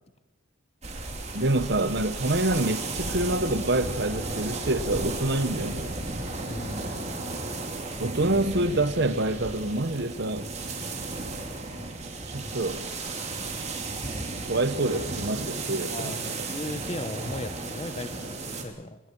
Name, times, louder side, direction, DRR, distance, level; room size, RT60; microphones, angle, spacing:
sound 1, 0.8-18.6, right 3 dB, 35° right, 2.9 m, -34 dB
voice 1, 1.3-6.0 8.0-10.5 12.3-12.8 14.4-16.4, right 2 dB, 55° right, 1.1 m, -27 dB
sound 2, 1.4-7.6, left 2 dB, 80° left, 6.4 m, -53 dB
voice 2, 6.4-6.9 15.9-19.0, left 1 dB, 30° left, 0.9 m, -37 dB
27.0 x 20.5 x 4.7 m
head